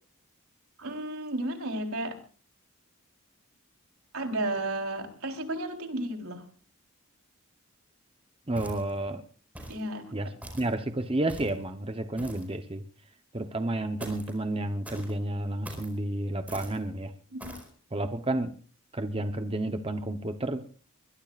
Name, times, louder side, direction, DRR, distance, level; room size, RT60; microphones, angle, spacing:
voice 1, 0.8-2.2 4.1-6.4 9.7-10.3 17.3-17.5, right 1 dB, 80° right, 3 dB, 3.9 m, -33 dB
voice 2, 8.5-9.2 10.1-12.8 13.3-17.1 17.9-18.5 18.9-20.6, right 1 dB, 25° right, 7 dB, 0.9 m, -31 dB
sound 1, 8.6-9.0 9.6-9.9 10.4-10.7 11.3-11.6 12.2-12.5 14.0-14.4 14.8-15.1 15.6-15.9 16.5-16.8 17.4-17.7, right 1 dB, 5° right, 4.7 m, -43 dB
23.0 x 21.5 x 2.5 m, 0.40 s
head